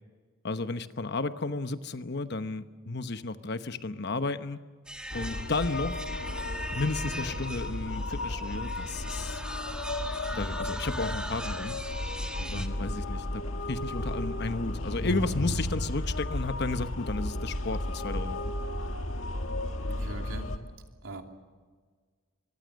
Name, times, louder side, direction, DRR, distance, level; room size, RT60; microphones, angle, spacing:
voice 1, 0.4-4.6 5.1-6.1 6.7-9.4 10.3-11.8 12.5-18.5, left 3 dB, 55° left, 10 dB, 1.0 m, -33 dB
sound 1, 4.8-12.7, right 1 dB, 5° right, 1.6 m, -41 dB
sound 2, 5.1-20.6, left 1 dB, 70° left, 1.9 m, -34 dB
voice 2, 19.9-20.5 21.0-21.2, right 1 dB, 80° right, 3 dB, 3.0 m, -40 dB
25.0 x 23.0 x 6.4 m, 1.5 s
head